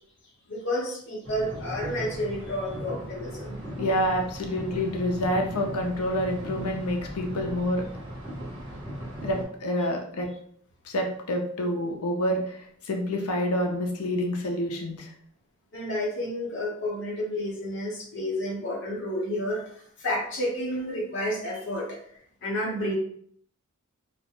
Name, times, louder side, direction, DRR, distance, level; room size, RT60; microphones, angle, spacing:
voice 1, 0.5-3.6 15.7-22.9, left 1 dB, 55° left, -3 dB, 0.8 m, -31 dB
sound 1, 1.2-9.4, equal, 25° right, 0.9 m, -38 dB
voice 2, 3.7-7.9 9.2-10.3 10.8-15.1, equal, 85° left, 2 dB, 0.5 m, -28 dB
2.4 x 2.1 x 2.8 m, 0.63 s
head